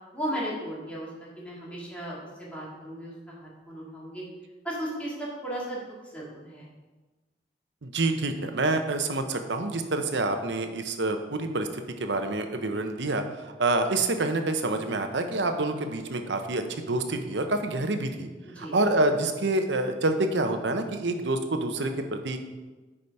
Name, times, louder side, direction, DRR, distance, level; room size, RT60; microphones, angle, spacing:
voice 1, 0.1-4.2 4.6-6.6 18.4-18.7, right 1 dB, 10° left, -6 dB, 2.4 m, -36 dB
voice 2, 7.8-18.3 18.6-22.4, right 2 dB, 80° right, 6 dB, 0.9 m, -27 dB
8.8 x 5.1 x 5.5 m, 1.2 s
head